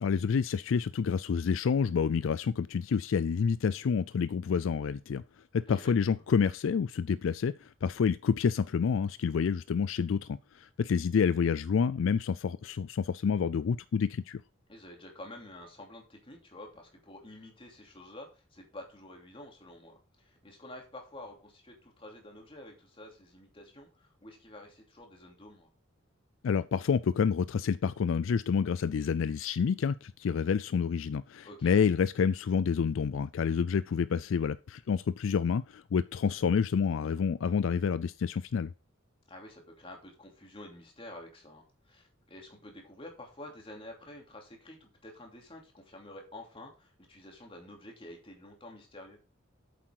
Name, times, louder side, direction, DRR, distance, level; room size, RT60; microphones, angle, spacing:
voice 1, 0.0-5.2 5.5-14.4 26.4-38.7, left 6 dB, 70° left, 0.4 m, -28 dB
voice 2, 5.7-6.2 14.7-25.7 31.4-31.8 39.3-49.2, left 1 dB, 25° left, 2.8 m, -49 dB
8.6 x 7.6 x 4.7 m
head